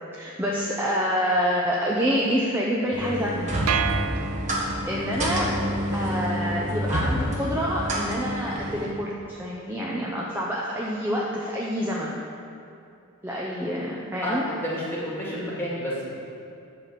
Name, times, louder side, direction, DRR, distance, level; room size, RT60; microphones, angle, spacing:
voice 1, 0.0-3.5 4.9-5.5 5.9-12.2 13.2-14.4, equal, 10° right, -4 dB, 0.6 m, -27 dB
sound 1, 2.9-8.9, equal, 35° right, 1.3 m, -28 dB
sound 2, 3.7-5.0, right 8 dB, 75° right, 0.4 m, -29 dB
voice 2, 14.2-16.2, equal, 10° left, -7 dB, 2.2 m, -30 dB
10.5 x 4.2 x 6.9 m, 2.7 s
head